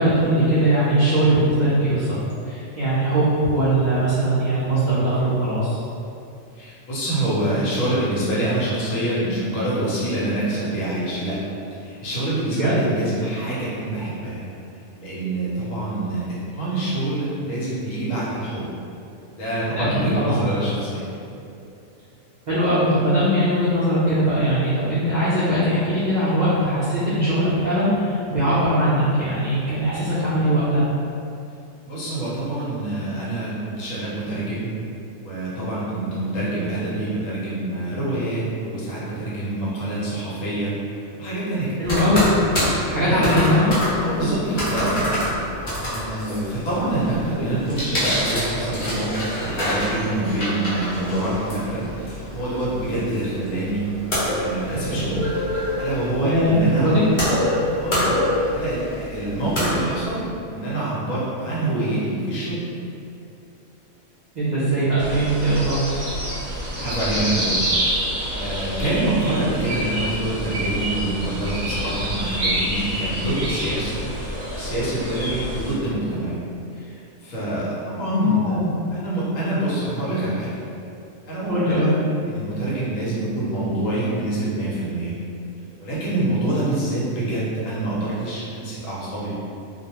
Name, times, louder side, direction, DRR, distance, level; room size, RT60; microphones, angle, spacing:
voice 1, 0.0-2.2 2.4-5.8 12.5-12.8 19.7-19.9 20.2-20.4 22.5-30.9 41.8-42.3 42.9-43.7 56.2-57.0 64.4-65.9 78.0-78.6 81.5-81.9, right 1 dB, 90° right, -10 dB, 0.3 m, -20 dB
voice 2, 6.5-11.4 11.7-14.4 15.0-18.6 19.3-21.1 31.9-34.7 35.2-40.7 41.2-41.9 43.1-43.3 44.0-45.0 45.9-53.9 54.3-55.3 55.8-57.1 57.8-58.2 58.5-60.2 60.5-62.6 66.7-67.6 67.9-74.1 74.5-76.4 76.7-78.6 78.9-80.6 81.3-81.9 82.3-85.1 85.8-89.3, right 1 dB, 75° left, -8 dB, 1.1 m, -26 dB
sound 1, 41.8-60.2, equal, 45° left, 0.8 m, -27 dB
sound 2, 65.0-75.7, right 1 dB, 60° right, 0.7 m, -27 dB
2.3 x 2.2 x 2.8 m, 2.6 s
omnidirectional pair, 1.4 m